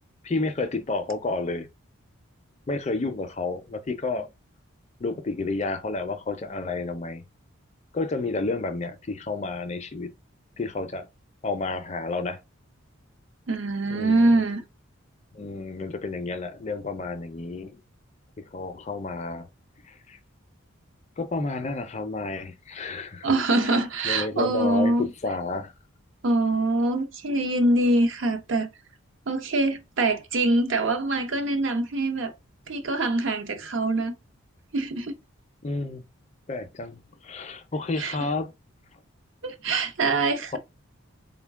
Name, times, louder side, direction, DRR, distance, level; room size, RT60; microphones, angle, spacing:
voice 1, 0.2-1.7 2.7-4.3 5.0-7.3 7.9-10.1 10.6-11.1 11.4-12.4 13.9-14.3 15.3-17.8 18.5-19.5 19.9-20.2 21.2-23.3 24.0-25.7 35.6-36.0 36.5-38.5, left 3 dB, 30° left, 0.4 m, -30 dB
voice 2, 13.5-14.6 23.2-25.1 26.2-28.7 29.3-32.3 32.7-34.1 34.7-35.1 38.0-38.3 39.4-40.6, right 2 dB, 60° right, 0.7 m, -24 dB
3.9 x 2.2 x 3.5 m
head